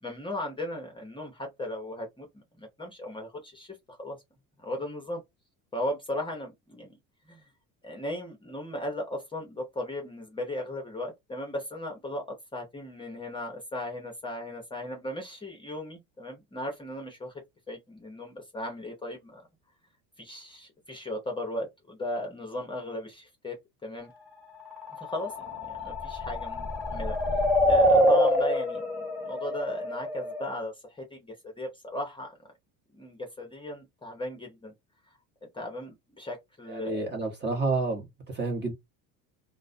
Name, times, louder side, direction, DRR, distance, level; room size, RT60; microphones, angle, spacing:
voice 1, 0.0-4.2 4.6-5.2 5.7-7.0 7.3-7.4 7.8-12.2 12.5-17.3 17.7-19.4 20.2-24.1 25.0-32.3 32.9-34.7 35.5-37.1, left 1 dB, 10° left, 0.8 m, -37 dB
sound 1, 24.7-30.5, equal, 5° right, 1.3 m, -26 dB
voice 2, 36.7-38.7, right 3 dB, 25° right, 1.0 m, -30 dB
2.3 x 2.2 x 2.5 m
supercardioid pair, 105°, 41 cm